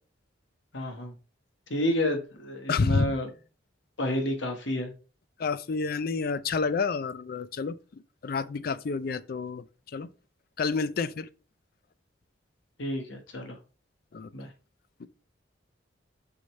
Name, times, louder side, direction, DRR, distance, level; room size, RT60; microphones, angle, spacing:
voice 1, 0.7-1.1 1.7-3.3 4.0-4.9 12.8-13.6 14.3-14.5, left 1 dB, 90° left, 1.4 m, -30 dB
voice 2, 2.7-3.2 5.4-9.6 9.9-10.1 10.6-11.3 14.1-14.3 15.0-15.1, left 4 dB, 55° left, 0.4 m, -29 dB
6.3 x 5.5 x 3.2 m
head